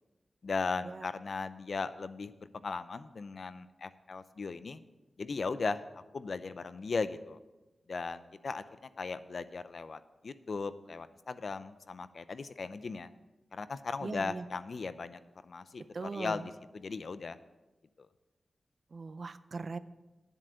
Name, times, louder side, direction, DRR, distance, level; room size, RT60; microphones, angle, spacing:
voice 1, 0.4-4.8 5.2-7.4 7.9-13.1 13.5-17.4 18.0-18.1, left 4 dB, 65° left, 13 dB, 0.6 m, -38 dB
voice 2, 14.0-14.4 15.9-16.5 18.9-19.8, right 4 dB, 60° right, 14 dB, 0.5 m, -39 dB
10.0 x 7.7 x 6.4 m, 1.1 s
cardioid pair, 70°, 0 cm